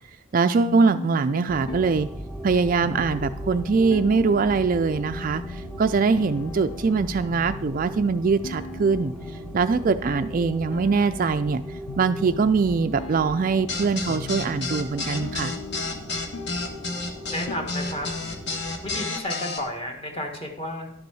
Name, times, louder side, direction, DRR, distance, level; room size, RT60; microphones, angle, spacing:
voice 1, 0.3-2.1 2.4-9.1 9.5-11.6 12.0-15.5, right 4 dB, 40° right, 10 dB, 0.3 m, -22 dB
sound 1, 0.6-18.6, left 5 dB, 80° left, 0.4 m, -40 dB
sound 2, 1.5-19.1, right 1 dB, ahead, 0.6 m, -38 dB
sound 3, 13.7-19.6, left 3 dB, 50° left, 1.3 m, -30 dB
voice 2, 17.3-18.1 18.8-20.9, left 1 dB, 25° left, 2 dB, 1.6 m, -32 dB
11.5 x 6.8 x 4.7 m, 0.75 s
head